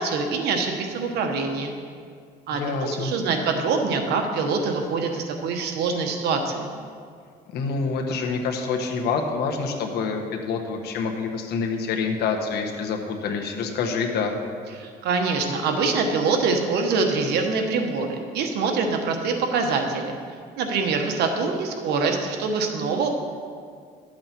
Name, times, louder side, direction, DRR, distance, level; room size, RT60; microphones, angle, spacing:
voice 1, 0.0-1.7 2.5-6.7 14.8-20.1 20.6-23.1, right 4 dB, 75° right, 4 dB, 1.3 m, -24 dB
voice 2, 2.5-3.1 7.5-14.4, left 5 dB, 70° left, 2 dB, 1.4 m, -27 dB
12.0 x 7.6 x 4.5 m, 2.1 s
cardioid pair, 110°, 17 cm